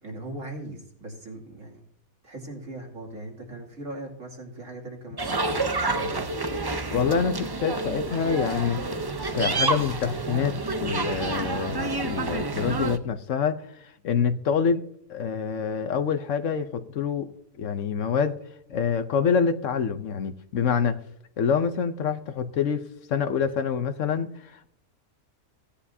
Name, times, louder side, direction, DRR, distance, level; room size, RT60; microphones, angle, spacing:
voice 1, 0.0-1.8 2.2-6.3, right 2 dB, 65° right, 3.0 m, -39 dB
sound 1, 5.2-13.0, right 3 dB, 35° right, 0.4 m, -28 dB
voice 2, 6.9-8.8 9.3-13.6 14.0-14.8 15.1-17.3 17.6-18.4 18.7-21.0 21.4-22.8 23.1-24.7, left 6 dB, 65° left, 1.0 m, -26 dB
17.0 x 10.0 x 2.7 m
omnidirectional pair, 1.4 m